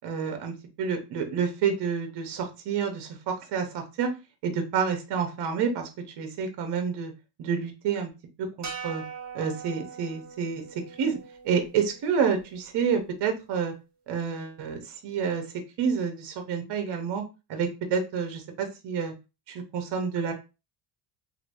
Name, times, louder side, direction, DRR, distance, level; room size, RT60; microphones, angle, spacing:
voice 1, 0.0-4.1 4.4-5.9 6.2-7.1 7.4-8.1 8.4-9.0 9.3-10.6 11.0-11.2 11.4-13.7 14.1-15.5 15.8-17.2 17.5-19.1 19.5-20.3, right 6 dB, 55° right, 5 dB, 1.0 m, -29 dB
sound 1, 8.6-13.0, right 6 dB, 35° right, 1.6 m, -42 dB
3.0 x 2.7 x 2.6 m, 0.28 s
supercardioid pair, 95°, 50 cm